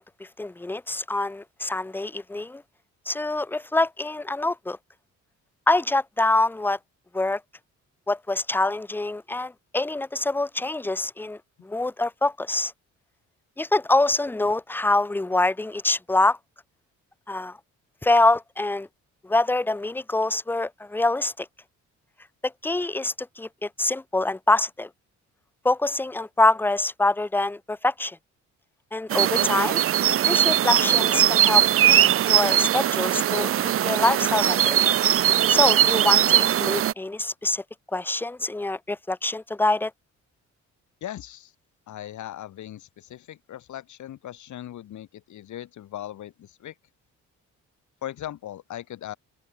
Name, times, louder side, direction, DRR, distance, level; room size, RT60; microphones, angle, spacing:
voice 1, 0.0-2.6 3.1-4.8 5.7-6.8 7.1-7.4 8.1-12.7 13.6-16.4 17.3-17.6 18.0-18.9 19.2-21.5 22.4-24.9 25.6-28.2 28.9-29.8 30.3-33.5 33.8-34.8 35.5-37.6 37.9-39.9, left 2 dB, 5° left, 0.6 m, -25 dB
sound 1, 29.1-36.9, right 11 dB, 50° right, 0.5 m, -20 dB
voice 2, 41.0-41.5 41.9-46.7 48.0-49.2, left 12 dB, 70° left, 2.9 m, -38 dB
open air
cardioid pair, 90°, 30 cm